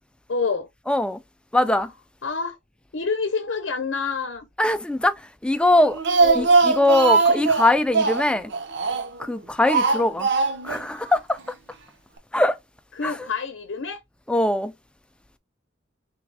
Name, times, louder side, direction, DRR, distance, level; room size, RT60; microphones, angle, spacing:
voice 1, 0.3-0.7 1.5-1.8 2.2-2.6 2.9-4.5 6.2-6.6 13.0-14.0, left 4 dB, 70° left, 0.7 m, -27 dB
voice 2, 0.9-1.2 1.5-1.9 4.6-6.0 6.3-8.5 9.2-10.3 10.6-11.4 12.3-12.6 13.0-13.3 14.3-14.7, left 1 dB, 5° left, 0.4 m, -21 dB
Speech, 5.7-9.3 9.7-10.8 11.1-11.2 11.5-11.6, right 4 dB, 65° right, 0.8 m, -21 dB
3.5 x 3.4 x 3.3 m
head